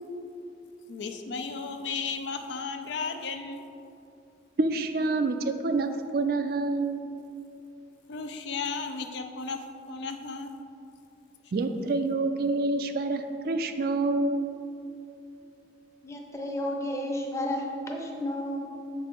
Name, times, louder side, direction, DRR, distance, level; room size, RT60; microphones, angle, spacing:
voice 1, 0.9-3.6 8.1-10.6, left 4 dB, 80° left, 6 dB, 0.5 m, -34 dB
voice 2, 4.6-7.0 11.5-14.5, right 3 dB, 55° right, 7 dB, 0.4 m, -27 dB
voice 3, 16.0-18.6, left 1 dB, 15° left, 1 dB, 0.7 m, -32 dB
7.0 x 4.6 x 4.4 m, 2.6 s
head